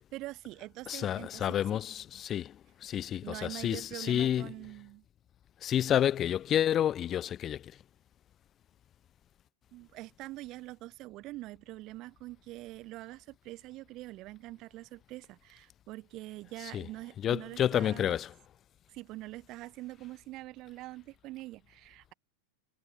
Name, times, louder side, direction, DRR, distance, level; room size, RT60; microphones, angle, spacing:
voice 1, 0.0-1.8 3.2-5.0 9.7-18.2 18.9-22.1, right 18 dB, 40° right, 1.4 m, -44 dB
voice 2, 0.9-4.5 5.6-7.8 16.6-16.9 17.2-18.3, left 10 dB, 30° left, 0.9 m, -30 dB
figure-of-eight pair, 90°, 0 cm